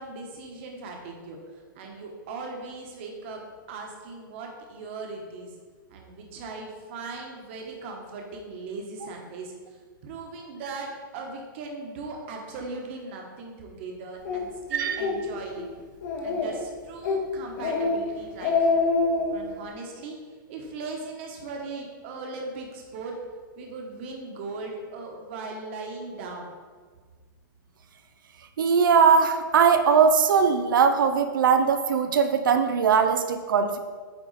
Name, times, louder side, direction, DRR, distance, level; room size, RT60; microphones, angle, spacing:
voice 1, 0.0-1.4 1.7-5.5 5.9-9.5 10.0-15.7 16.2-18.8 19.3-20.2 20.5-23.2 23.6-26.5, right 3 dB, 35° right, 1 dB, 1.2 m, -38 dB
Speech, 14.3-14.4 14.9-15.2 15.5-15.6 16.0-16.6 17.0-17.2 17.6-18.0 18.3-19.3, left 4 dB, 60° left, 1.8 m, -25 dB
voice 2, 14.7-15.0 28.6-33.8, right 6 dB, 70° right, 7 dB, 0.6 m, -20 dB
9.0 x 4.0 x 4.1 m, 1.5 s
hypercardioid pair, 170°, 11 cm